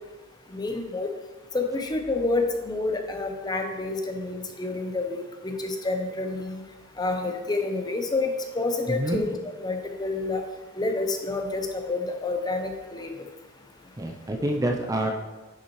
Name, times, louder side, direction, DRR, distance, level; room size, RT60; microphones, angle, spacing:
voice 1, 0.5-1.1 1.5-6.6 7.0-8.3 8.5-9.3 9.6-10.4 10.8-13.1, left 3 dB, 20° left, 4 dB, 0.7 m, -28 dB
voice 2, 8.9-9.2 14.0-15.1, right 1 dB, 15° right, 2 dB, 0.5 m, -27 dB
10.0 x 5.7 x 3.1 m, 1.2 s
head